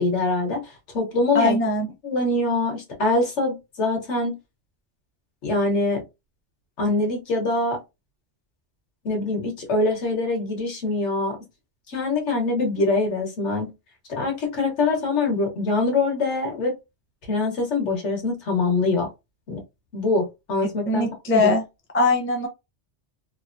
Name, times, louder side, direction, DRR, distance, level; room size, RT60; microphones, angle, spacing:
voice 1, 0.0-1.6 2.0-4.3 5.4-6.0 6.8-7.8 9.0-11.4 11.9-13.7 14.1-16.7 17.3-19.1 19.5-19.6 19.9-21.0 21.3-21.5, left 2 dB, 75° left, 1.4 m, -24 dB
voice 2, 1.3-1.9 20.9-21.6 21.9-22.5, left 2 dB, 15° left, 0.5 m, -21 dB
3.2 x 2.2 x 2.5 m
omnidirectional pair, 1.2 m